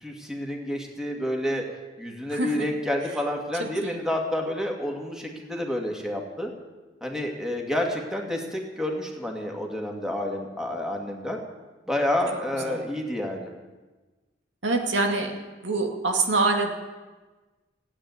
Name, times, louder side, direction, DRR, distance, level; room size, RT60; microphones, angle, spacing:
voice 1, 0.0-1.6 2.0-6.5 7.0-11.4 11.9-13.5, left 1 dB, 5° right, 0 dB, 2.3 m, -29 dB
voice 2, 2.3-2.7 3.6-4.0 12.5-12.8 14.6-15.3 15.6-16.7, right 3 dB, 85° right, 2 dB, 2.1 m, -25 dB
16.0 x 8.8 x 9.7 m, 1.2 s
head